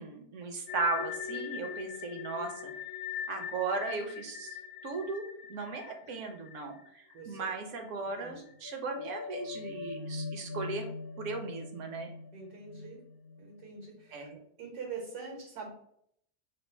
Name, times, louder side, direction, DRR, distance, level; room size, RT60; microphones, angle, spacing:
voice 1, 0.0-2.7 3.3-4.6 4.8-10.9 11.2-12.1 14.1-14.4, right 3 dB, 60° right, 4 dB, 0.9 m, -37 dB
sound 1, 0.7-7.5 7.8-7.9 8.5-13.8, left 6 dB, 65° left, 0.6 m, -42 dB
voice 2, 7.1-7.5 8.2-8.4 12.3-13.0 13.4-14.3 14.6-15.7, right 5 dB, 80° right, -1 dB, 1.5 m, -44 dB
3.3 x 2.4 x 4.2 m, 0.69 s
omnidirectional pair, 1.6 m